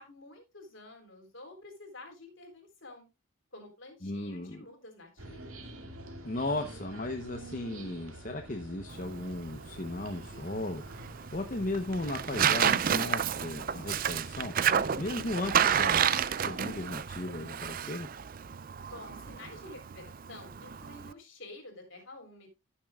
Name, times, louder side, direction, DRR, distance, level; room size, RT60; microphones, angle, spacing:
voice 1, 0.0-3.1 3.5-5.6 18.8-22.5, left 2 dB, 60° left, 3 dB, 3.8 m, -50 dB
voice 2, 4.0-4.7 6.2-14.5 15.0-18.1, left 2 dB, 40° left, 4 dB, 0.9 m, -36 dB
sound 1, 5.2-17.0, right 1 dB, 80° right, 2.2 m, -47 dB
Tearing, 8.9-21.1, right 8 dB, 40° right, 0.4 m, -31 dB
15.0 x 7.3 x 2.3 m, 0.24 s
head